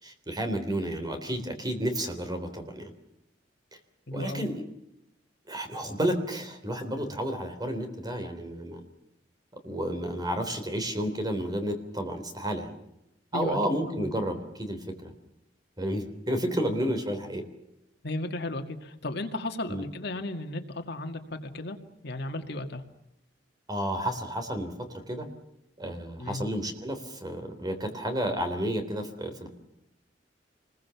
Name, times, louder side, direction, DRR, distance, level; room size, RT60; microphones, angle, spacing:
voice 1, 0.0-2.9 4.1-4.6 5.5-8.8 9.6-12.7 13.3-15.1 15.8-17.4 19.7-19.8 23.7-24.7 25.1-25.3 25.8-29.5, equal, 20° right, 6 dB, 3.6 m, -31 dB
voice 2, 4.1-4.5 13.3-13.6 13.9-14.1 18.0-21.8 22.0-22.8 26.2-26.5, left 2 dB, 65° left, 6 dB, 2.1 m, -35 dB
28.0 x 21.5 x 7.1 m, 0.81 s
head